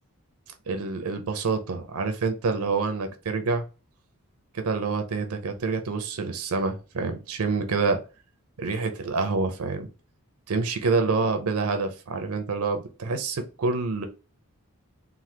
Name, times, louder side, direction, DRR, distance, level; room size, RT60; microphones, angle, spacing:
voice 1, 0.7-3.6 4.5-8.0 8.6-9.9 10.5-14.1, right 4 dB, 80° right, 7 dB, 0.5 m, -27 dB
3.2 x 2.1 x 2.8 m, 0.32 s
head